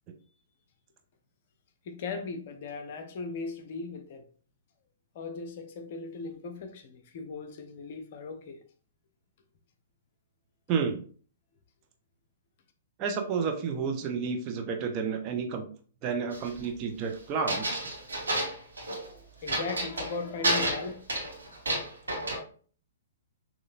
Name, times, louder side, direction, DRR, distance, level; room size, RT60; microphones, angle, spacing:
voice 1, 1.8-4.2 5.1-8.6 19.1-20.9, left 4 dB, 45° left, 0.7 m, -38 dB
voice 2, 10.7-11.0 13.0-15.7 16.0-17.9, right 6 dB, 30° right, 0.8 m, -31 dB
sound 1, 16.3-16.6 17.5-19.1 19.5-20.1 20.4-22.4, right 1 dB, 70° right, 1.5 m, -30 dB
6.5 x 3.1 x 2.5 m
figure-of-eight pair, 115°, 0 cm